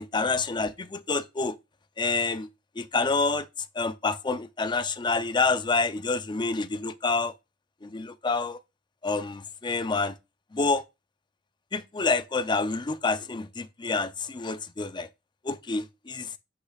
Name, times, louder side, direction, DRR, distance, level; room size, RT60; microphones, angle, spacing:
voice 1, 0.0-1.6 2.0-2.5 2.8-3.5 3.8-7.3 7.8-8.6 9.0-10.1 10.5-10.8 11.7-15.1 15.4-16.3, left 3 dB, 25° left, 0.5 m, -28 dB
7.7 x 6.8 x 2.3 m
head